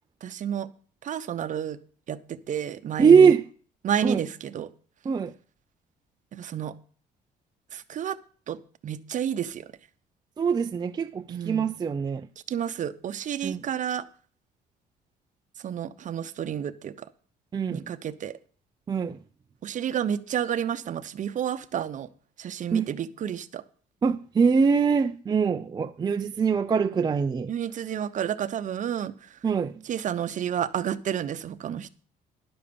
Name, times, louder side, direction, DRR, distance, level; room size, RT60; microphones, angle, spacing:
voice 1, 0.2-0.7 1.0-1.8 2.1-3.3 3.8-4.7 6.3-6.7 7.7-8.2 8.5-8.6 8.8-9.7 11.3-11.7 12.5-14.0 15.6-17.1 17.7-18.4 19.6-22.1 22.4-23.6 27.5-29.4 29.9-31.9, right 9 dB, 50° right, 0.8 m, -30 dB
voice 2, 3.0-3.5 4.0-4.2 5.0-5.3 10.4-12.3 13.4-13.6 17.5-17.9 18.9-19.2 22.7-22.9 24.0-27.5 29.4-29.9, right 6 dB, 25° right, 0.5 m, -22 dB
11.0 x 6.6 x 7.0 m
cardioid pair, 110°, 17 cm